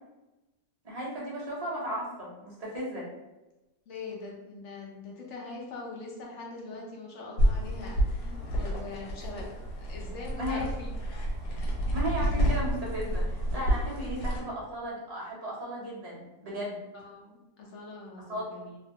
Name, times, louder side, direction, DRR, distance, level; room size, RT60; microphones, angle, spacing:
voice 1, 0.8-3.0 10.4-10.6 11.9-16.8 18.3-18.5, equal, 55° right, -6 dB, 0.4 m, -35 dB
voice 2, 3.9-10.9 14.0-14.1 16.9-18.8, left 3 dB, 65° left, -2 dB, 0.8 m, -42 dB
sound 1, 7.4-14.4, equal, 80° left, 1.3 m, -29 dB
2.9 x 2.1 x 2.8 m, 1.0 s
omnidirectional pair, 1.7 m